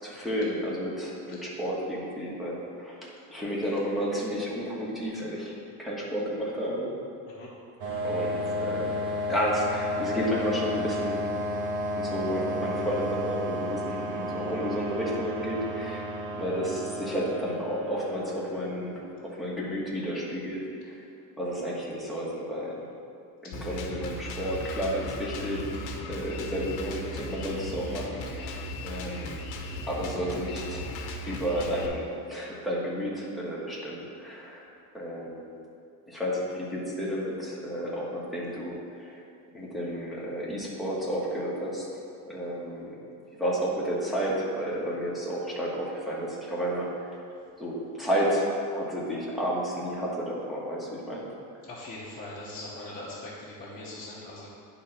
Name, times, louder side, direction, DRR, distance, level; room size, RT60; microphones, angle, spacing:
voice 1, 0.0-5.5 5.8-6.9 8.0-9.0 9.3-11.3 11.9-16.1 16.4-21.0 21.4-22.9 23.4-29.4 29.9-30.9 31.3-34.6 34.9-35.5 36.1-39.2 39.5-41.8 42.3-42.9 43.4-47.1 47.6-51.2, equal, ahead, -6 dB, 1.3 m, -31 dB
sound 1, 7.8-19.2, left 1 dB, 55° right, 1.4 m, -32 dB
Drum kit, 23.5-31.9, left 1 dB, 60° left, 1.0 m, -37 dB
voice 2, 51.7-54.5, left 2 dB, 20° left, -9 dB, 1.0 m, -41 dB
9.9 x 3.9 x 5.8 m, 2.5 s
cardioid pair, 160°, 43 cm